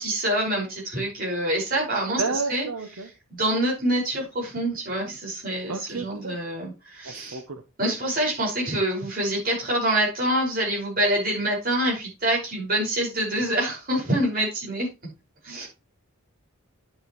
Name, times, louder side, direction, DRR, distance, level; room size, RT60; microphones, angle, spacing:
voice 1, 0.0-2.7 2.9-7.4 7.8-14.9 15.4-15.7, right 1 dB, 40° right, -3 dB, 5.5 m, -26 dB
voice 2, 2.2-3.1 5.7-6.4 7.1-7.6 15.6-15.7, right 4 dB, 75° right, 6 dB, 0.9 m, -31 dB
10.5 x 7.7 x 3.1 m, 0.27 s
head